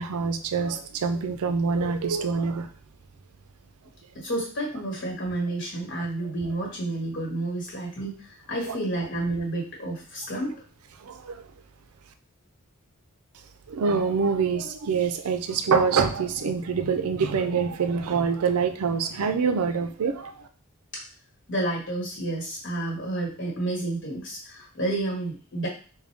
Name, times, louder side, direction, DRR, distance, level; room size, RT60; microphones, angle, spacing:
voice 1, 0.0-2.7 8.7-8.8 11.0-11.4 13.7-20.5, right 5 dB, 80° right, 9 dB, 0.4 m, -25 dB
voice 2, 4.1-10.6 20.9-21.0 21.5-25.7, right 2 dB, 55° left, -2 dB, 1.4 m, -30 dB
3.7 x 2.2 x 3.4 m, 0.39 s
head